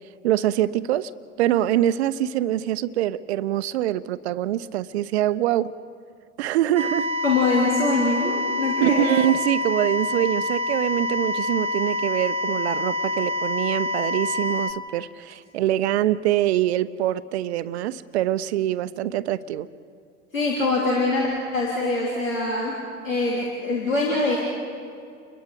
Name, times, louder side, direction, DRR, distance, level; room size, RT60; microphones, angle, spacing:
voice 1, 0.2-1.1 1.4-5.7 6.4-7.1 8.8-19.7, right 12 dB, 55° right, 0.8 m, -24 dB
sound 1, 6.8-14.7, left 2 dB, 15° right, 1.0 m, -27 dB
voice 2, 7.2-9.1 20.3-22.7 23.0-24.4, left 3 dB, 80° left, 3.3 m, -23 dB
29.5 x 22.0 x 4.9 m
figure-of-eight pair, 85°, 40 cm